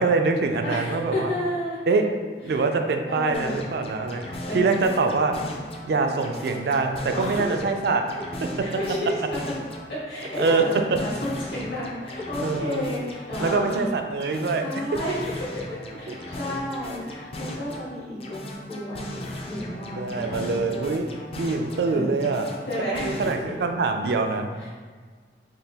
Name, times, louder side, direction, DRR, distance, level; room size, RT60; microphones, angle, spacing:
voice 1, 0.0-1.3 1.9-2.0 2.4-5.3 5.8-8.0 10.4-10.6 12.4-12.9 13.4-14.7 16.1-16.2 19.9-21.0 21.4-22.5 23.0-24.5, right 4 dB, 65° right, 5 dB, 0.3 m, -24 dB
voice 2, 0.6-2.1 2.5-2.6 3.0-3.6 4.4-4.8 6.0-6.2 7.1-7.5 8.6-9.1 9.9-13.9 14.6-15.5 15.9-20.6 21.9-22.3 22.7-23.2 24.6-24.7, left 1 dB, 75° left, -7 dB, 1.4 m, -31 dB
sound 1, 3.3-5.9 6.2-9.9 10.2-13.9 14.2-17.9 18.2-21.9 22.2-23.3, left 1 dB, 35° left, 0.4 m, -37 dB
3.8 x 2.6 x 3.3 m, 1.5 s
head